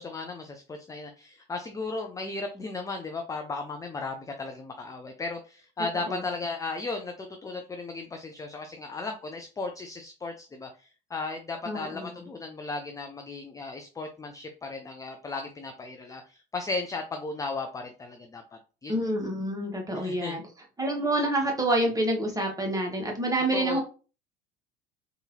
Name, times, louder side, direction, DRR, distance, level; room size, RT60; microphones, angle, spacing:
voice 1, 0.0-18.4 18.8-19.1 19.9-20.4 23.5-23.8, left 3 dB, 10° left, 5 dB, 0.4 m, -36 dB
voice 2, 11.6-12.1 18.9-20.4 20.8-23.8, right 1 dB, 10° right, 1 dB, 1.2 m, -27 dB
3.7 x 2.7 x 2.7 m, 0.36 s
figure-of-eight pair, 65°, 31 cm